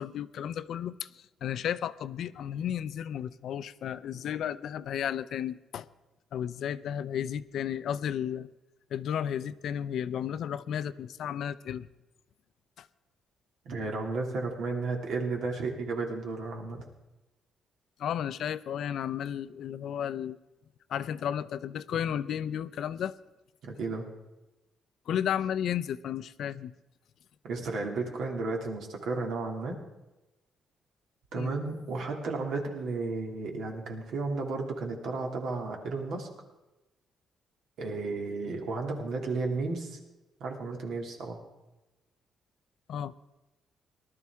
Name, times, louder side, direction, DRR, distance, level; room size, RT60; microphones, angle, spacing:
voice 1, 0.0-5.9 6.3-8.5 8.9-11.9 12.8-12.9 18.0-20.4 20.9-23.2 25.1-26.7 31.3-31.5 42.9-43.1, left 9 dB, 65° left, 16 dB, 0.4 m, -33 dB
voice 2, 13.7-16.8 23.6-24.1 27.4-29.8 31.3-36.3 37.8-40.0 40.4-41.4, right 3 dB, 70° right, 1 dB, 2.4 m, -33 dB
19.0 x 12.5 x 3.6 m, 1.0 s
cardioid pair, 120°, 0 cm